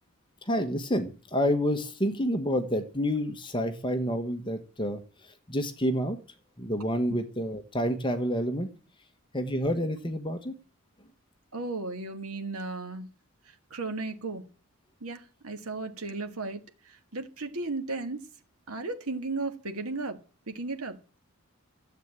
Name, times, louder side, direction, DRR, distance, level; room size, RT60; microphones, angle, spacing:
voice 1, 0.4-5.0 5.5-6.2 6.6-8.7 9.3-10.5, equal, 20° left, 1.3 m, -28 dB
voice 2, 11.5-13.1 13.7-14.4 15.0-18.3 18.7-20.2 20.5-21.0, right 3 dB, 80° right, 1.8 m, -35 dB
13.0 x 8.2 x 8.9 m
head